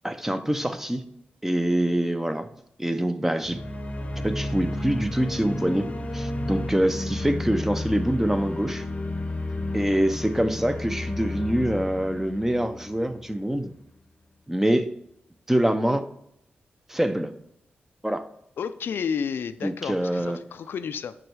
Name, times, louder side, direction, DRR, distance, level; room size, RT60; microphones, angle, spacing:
voice 1, 0.0-1.0 1.4-2.5 2.8-3.6 4.2-8.8 9.7-13.7 14.5-14.9 15.5-16.1 16.9-17.3 18.0-18.2 19.6-20.4, right 1 dB, 10° right, 10 dB, 0.5 m, -25 dB
sound 1, 3.4-13.5, left 1 dB, 35° left, 0.7 m, -32 dB
voice 2, 18.6-21.2, left 7 dB, 80° left, 12 dB, 0.3 m, -31 dB
5.3 x 4.9 x 4.6 m, 0.76 s
cardioid pair, 75°, 4 cm